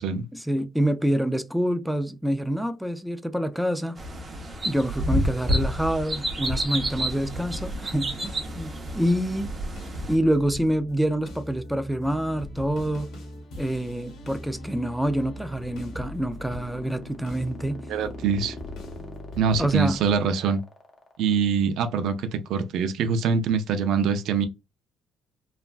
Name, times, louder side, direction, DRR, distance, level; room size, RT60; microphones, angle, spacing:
voice 1, 0.3-4.0 4.6-9.5 10.1-13.1 13.6-17.9 19.6-20.0, right 1 dB, ahead, 0.4 m, -26 dB
sound 1, 4.0-10.2, equal, 25° right, 0.8 m, -29 dB
sound 2, 7.0-20.2, equal, 75° left, 1.0 m, -40 dB
sound 3, 15.3-21.6, left 4 dB, 40° left, 0.8 m, -43 dB
voice 2, 17.9-18.6 19.4-20.6 21.2-24.5, right 6 dB, 70° right, 0.5 m, -24 dB
3.2 x 2.1 x 2.4 m
cardioid pair, 105°, 0 cm